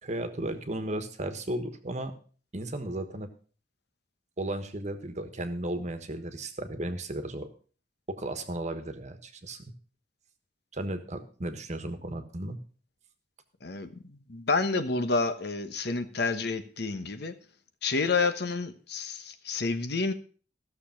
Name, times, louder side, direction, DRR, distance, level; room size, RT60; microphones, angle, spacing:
voice 1, 0.0-2.1 2.5-3.3 4.4-7.5 8.1-9.6 10.7-12.6, right 1 dB, 40° right, 8 dB, 1.3 m, -35 dB
voice 2, 14.3-17.3 17.8-20.1, left 3 dB, 65° left, 9 dB, 1.1 m, -29 dB
15.0 x 6.9 x 5.7 m, 0.41 s
head